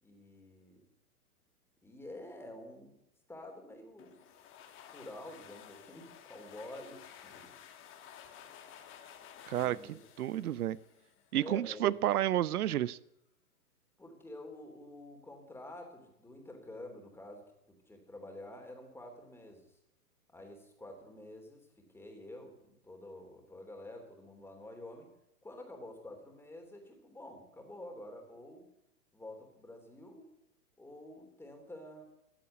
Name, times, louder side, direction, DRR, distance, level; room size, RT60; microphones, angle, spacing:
voice 1, 0.0-0.9 1.8-3.0 3.3-4.2 4.9-7.5 9.5-10.0 10.7-10.8 11.3-11.9 14.0-19.8 20.3-25.1 25.4-28.6 29.1-30.3 30.8-32.0, left 1 dB, 5° left, 2 dB, 3.5 m, -49 dB
sound 1, 4.0-11.5, left 9 dB, 25° left, 1.9 m, -54 dB
voice 2, 9.5-10.8 11.3-13.0, right 12 dB, 70° right, 20 dB, 0.8 m, -31 dB
15.0 x 9.4 x 9.5 m, 0.84 s
hypercardioid pair, 125°, 47 cm